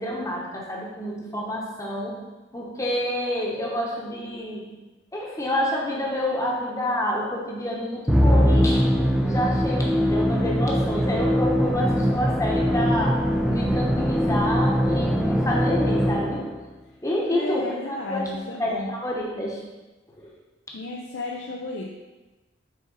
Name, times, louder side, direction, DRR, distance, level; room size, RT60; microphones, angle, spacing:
voice 1, 0.0-2.2 2.5-4.7 5.1-13.2 13.5-16.4 17.0-18.3 18.6-19.6 20.2-20.3, equal, 15° left, -3 dB, 1.0 m, -28 dB
Musical instrument, 8.1-16.6, equal, ahead, 0.4 m, -22 dB
voice 2, 17.3-18.9 20.7-21.9, left 2 dB, 70° left, -1 dB, 0.5 m, -33 dB
6.3 x 3.9 x 3.9 m, 1.2 s
head